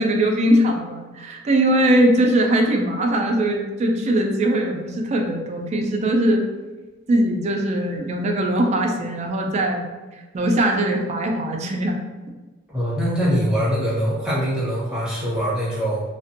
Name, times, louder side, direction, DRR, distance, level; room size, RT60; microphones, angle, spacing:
voice 1, 0.0-6.4 7.1-9.9 10.3-12.0, right 1 dB, 35° right, 3 dB, 0.3 m, -20 dB
voice 2, 12.7-16.0, equal, 5° right, -8 dB, 0.8 m, -23 dB
2.5 x 2.1 x 2.5 m, 1.3 s
head